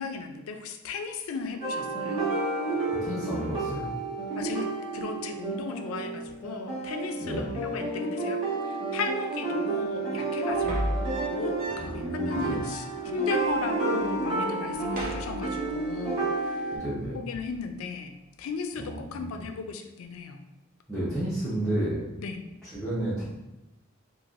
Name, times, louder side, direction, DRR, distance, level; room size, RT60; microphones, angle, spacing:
voice 1, 0.0-2.2 4.4-4.7 4.9-16.7 17.1-18.1 18.4-20.4 22.2-22.4, left 5 dB, 85° left, 6 dB, 0.4 m, -36 dB
sound 1, 1.6-16.8, right 3 dB, 30° right, 1.0 m, -31 dB
voice 2, 2.9-3.9 7.2-7.5 11.8-12.6 16.7-17.2 18.8-19.4 20.9-22.0 22.6-23.3, right 1 dB, ahead, -12 dB, 0.7 m, -32 dB
sound 2, 10.5-12.1 12.4-12.5 12.7-13.7 14.0-14.3 14.7-16.1 17.3-17.7, equal, 45° right, 0.7 m, -36 dB
3.1 x 2.4 x 2.4 m, 1.0 s
head